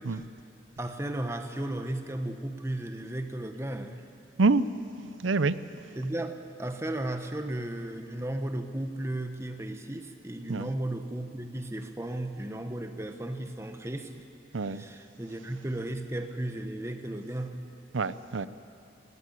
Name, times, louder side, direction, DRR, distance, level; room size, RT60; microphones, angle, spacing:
voice 1, 0.8-4.0 6.0-14.3 14.7-17.5, right 1 dB, 15° right, 7 dB, 1.0 m, -35 dB
voice 2, 5.2-5.6 10.5-10.7 14.5-14.8 17.9-18.5, right 3 dB, 90° right, 15 dB, 0.7 m, -26 dB
18.0 x 16.5 x 9.6 m, 2.6 s
head